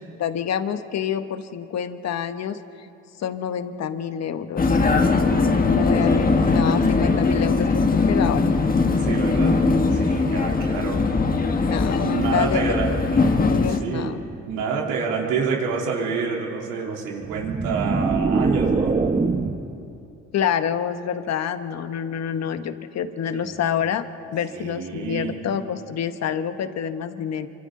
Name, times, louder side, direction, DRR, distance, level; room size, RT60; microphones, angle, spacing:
voice 1, 0.2-2.6 3.2-4.8 5.7-7.8 8.1-8.5 11.7-12.9 13.4-14.2 20.3-24.1 24.3-27.5, left 8 dB, 55° left, 9 dB, 1.2 m, -27 dB
Vehicle, 4.6-13.8, left 3 dB, 30° left, 1.6 m, -20 dB
voice 2, 9.0-11.0 12.0-13.0 13.7-14.2 14.5-19.1 23.3-23.5 24.5-25.4, right 5 dB, 85° right, -1 dB, 3.4 m, -28 dB
sound 1, 17.2-19.8, right 4 dB, 25° right, 1.1 m, -23 dB
27.5 x 25.0 x 3.8 m, 2.7 s
cardioid pair, 90°, 31 cm